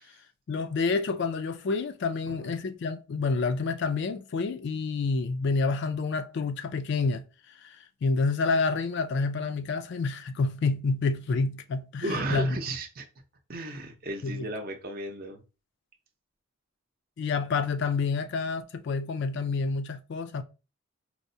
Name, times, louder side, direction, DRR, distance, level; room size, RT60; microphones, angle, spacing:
voice 1, 0.5-7.2 7.5-12.6 14.2-14.5 17.2-20.4, left 4 dB, 55° left, 0.3 m, -28 dB
voice 2, 12.0-13.1 13.5-15.4, right 2 dB, 45° right, 0.6 m, -34 dB
4.5 x 2.0 x 2.6 m
head